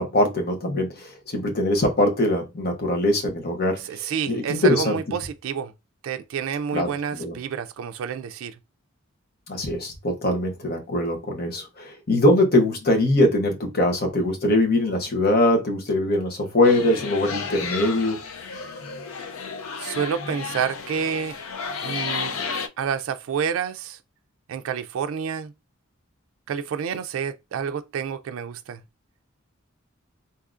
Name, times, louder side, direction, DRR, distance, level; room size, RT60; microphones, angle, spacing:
voice 1, 0.0-5.0 6.7-7.4 9.5-18.2, left 1 dB, 50° left, 1.0 m, -22 dB
voice 2, 3.8-5.7 6.0-8.6 19.8-21.4 21.8-22.3 22.8-24.0 24.5-25.5 26.5-28.8, right 7 dB, 75° right, 0.3 m, -29 dB
sound 1, 16.6-22.7, left 5 dB, 85° left, 0.5 m, -32 dB
3.6 x 2.7 x 2.4 m
head